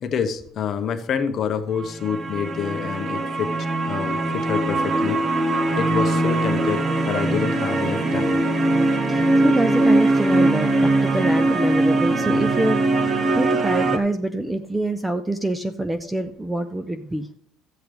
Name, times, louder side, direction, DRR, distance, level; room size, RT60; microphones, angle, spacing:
voice 1, 0.0-3.5 3.9-5.2 5.7-8.4, left 7 dB, 35° left, 6 dB, 0.9 m, -27 dB
sound 1, 1.8-14.0, right 2 dB, 25° right, 0.9 m, -21 dB
voice 2, 9.1-17.3, right 1 dB, 5° right, 10 dB, 0.4 m, -26 dB
14.0 x 7.9 x 3.4 m, 0.66 s
cardioid pair, 170°, 0 cm